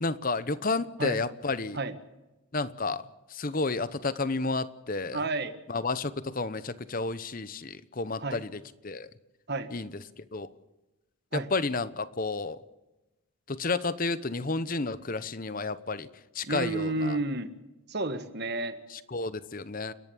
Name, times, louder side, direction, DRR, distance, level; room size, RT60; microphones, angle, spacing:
voice 1, 0.0-1.8 2.5-3.0 3.3-5.2 5.7-9.1 9.7-10.5 11.3-12.6 13.5-16.1 16.3-17.2 18.9-19.9, left 3 dB, 40° left, 15 dB, 0.9 m, -31 dB
voice 2, 5.1-5.5 8.2-8.4 9.5-9.7 11.3-11.5 16.4-17.5 17.9-18.8, right 2 dB, 50° right, 10 dB, 1.5 m, -31 dB
30.0 x 11.0 x 8.6 m, 1.1 s
head